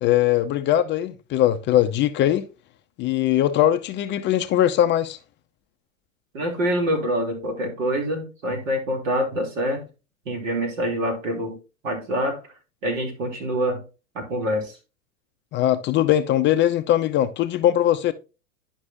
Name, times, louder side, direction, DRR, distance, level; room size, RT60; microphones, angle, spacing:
voice 1, 0.0-2.5 3.0-5.2 15.5-18.1, left 12 dB, 30° left, 0.5 m, -20 dB
voice 2, 6.3-9.8 10.2-11.6 11.8-12.4 12.8-13.8 14.1-14.8, equal, 75° right, 3.0 m, -25 dB
11.0 x 5.3 x 2.6 m
hypercardioid pair, 100°, 40 cm